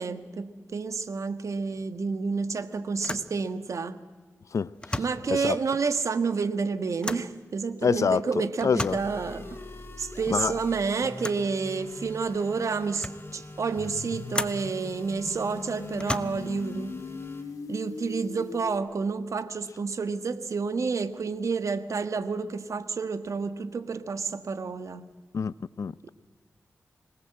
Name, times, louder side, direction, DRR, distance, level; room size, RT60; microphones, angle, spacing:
voice 1, 0.0-4.0 5.0-9.6 10.0-17.0 17.7-25.1 26.0-26.1, right 4 dB, 65° right, 1.5 m, -30 dB
sound 1, 1.7-2.0 2.3-2.4 3.0-3.4 4.7-5.3 7.0-7.4 8.6-9.1 11.2-11.5 12.3-12.4 12.7-13.3 14.3-14.7 15.9-16.6, left 1 dB, 15° left, 1.3 m, -34 dB
voice 2, 4.5-5.0 5.3-5.6 7.8-8.2 8.6-9.0 10.3-10.5 25.3-26.1, left 6 dB, 65° left, 0.7 m, -26 dB
sound 2, 8.8-17.4, left 1 dB, 40° left, 6.0 m, -44 dB
sound 3, 13.8-18.8, left 5 dB, 85° left, 2.1 m, -40 dB
26.0 x 19.0 x 7.7 m
cardioid pair, 45°, 6 cm